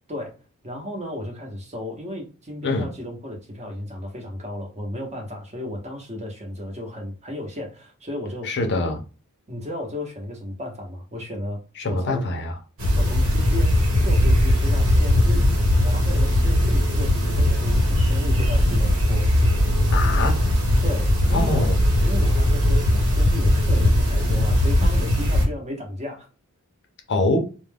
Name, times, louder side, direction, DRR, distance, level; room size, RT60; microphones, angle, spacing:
voice 1, 0.6-8.6 9.5-11.6 11.9-12.3 12.9-15.4 15.8-19.3 20.8-21.7 22.0-26.3, left 1 dB, 30° right, 0.8 m, -34 dB
voice 2, 8.4-9.0 11.8-12.6 19.9-20.4 21.3-21.8 27.1-27.5, left 2 dB, 50° left, 0.6 m, -24 dB
sound 1, 12.8-25.5, left 1 dB, 75° right, 1.3 m, -19 dB
2.3 x 2.2 x 3.3 m
head